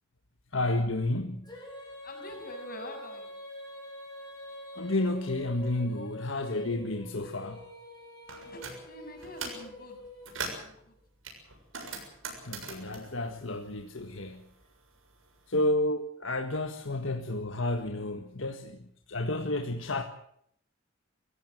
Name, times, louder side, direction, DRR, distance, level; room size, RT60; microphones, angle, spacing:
voice 1, 0.5-1.4 4.8-7.6 12.4-14.4 15.5-18.8 19.1-20.0, left 2 dB, 70° left, 5 dB, 1.7 m, -31 dB
Female singing, 1.4-10.6, left 1 dB, 20° left, 6.7 m, -45 dB
voice 2, 2.0-3.3 8.5-10.0 10.4-10.9, left 1 dB, 45° left, 4 dB, 7.0 m, -45 dB
sound 1, 8.3-8.8 9.2-9.7 10.0-10.7 11.2-14.2 14.5-15.6, right 4 dB, 80° right, 7.0 m, -41 dB
25.0 x 16.0 x 7.9 m, 0.69 s
head